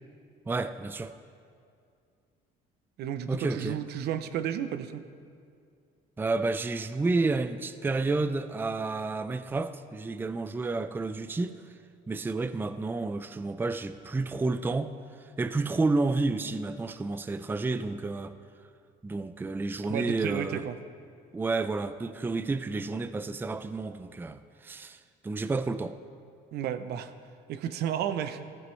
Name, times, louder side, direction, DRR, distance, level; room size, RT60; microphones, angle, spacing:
voice 1, 0.5-1.2 3.3-3.8 6.2-11.5 12.1-14.9 15.2-18.4 19.0-20.6 21.3-26.0, right 3 dB, 10° right, 11 dB, 0.4 m, -30 dB
voice 2, 3.0-5.0 19.9-20.7 26.5-27.1 27.5-28.4, right 10 dB, 75° right, 10 dB, 0.8 m, -32 dB
14.5 x 14.0 x 3.2 m, 2.3 s
cardioid pair, 110°, 17 cm